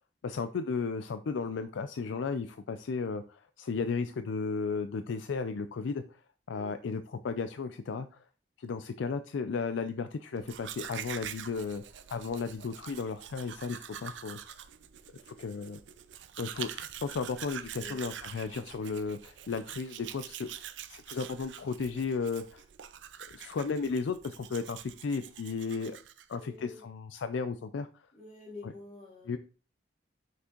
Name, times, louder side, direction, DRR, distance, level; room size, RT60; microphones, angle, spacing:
voice 1, 0.2-6.2 6.5-8.2 8.6-11.8 12.1-14.4 15.3-15.8 16.4-22.6 23.3-26.0 26.3-28.1 29.3-29.4, left 5 dB, 75° left, 10 dB, 0.4 m, -34 dB
Domestic sounds home sounds, 10.4-26.4, right 10 dB, 75° right, 0.5 m, -45 dB
voice 2, 26.3-26.9 28.1-29.3, left 3 dB, 45° left, -3 dB, 3.2 m, -48 dB
6.1 x 5.9 x 2.9 m, 0.37 s
head